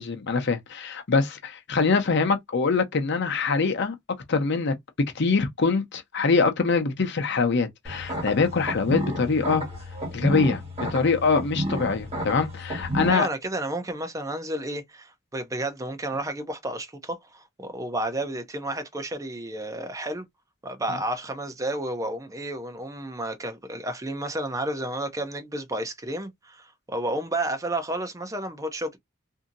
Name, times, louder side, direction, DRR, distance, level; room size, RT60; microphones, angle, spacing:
voice 1, 0.0-3.9 4.3-4.7 5.1-9.6 10.1-10.6 10.9-13.3, left 4 dB, 60° left, 0.7 m, -24 dB
sound 1, 7.8-13.1, equal, 30° right, 1.6 m, -31 dB
voice 2, 13.1-20.3 20.6-29.0, right 1 dB, 15° right, 0.6 m, -31 dB
2.7 x 2.7 x 2.5 m
head